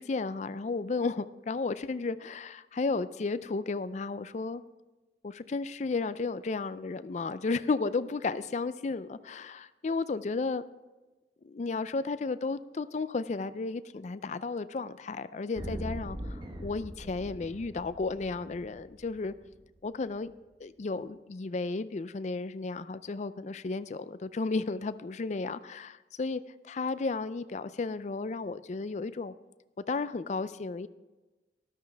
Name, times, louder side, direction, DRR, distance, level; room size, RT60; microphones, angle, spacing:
voice 1, 0.0-4.6 5.2-10.6 11.4-19.3 19.8-20.3 20.6-29.3 29.9-30.9, left 3 dB, 40° left, 14 dB, 0.4 m, -33 dB
sound 1, 15.6-19.6, equal, 25° right, 1.2 m, -41 dB
13.0 x 12.0 x 3.4 m, 1.2 s
head